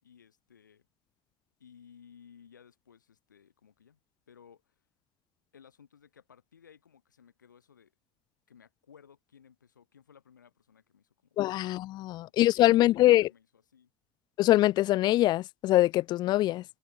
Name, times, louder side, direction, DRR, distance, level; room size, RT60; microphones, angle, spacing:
voice 1, 0.0-0.9 1.6-4.0 4.3-4.7 5.5-7.9 8.5-11.7 12.2-13.9, left 7 dB, 90° left, 6.5 m, -58 dB
voice 2, 11.4-13.3 14.4-16.6, left 15 dB, 50° left, 0.4 m, -23 dB
hypercardioid pair, 70°, 10 cm